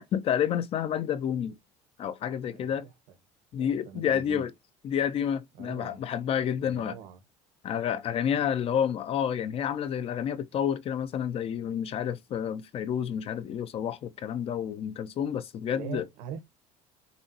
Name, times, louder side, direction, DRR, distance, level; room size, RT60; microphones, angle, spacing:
voice 1, 0.1-1.5 2.0-2.9 3.5-4.5 4.8-7.0 7.6-16.1, left 9 dB, 45° left, 0.8 m, -29 dB
voice 2, 2.4-2.9 3.6-4.5 5.6-6.0 6.5-7.2 15.7-16.4, right 9 dB, 75° right, 1.5 m, -42 dB
6.9 x 2.5 x 2.8 m
supercardioid pair, 110°, 14 cm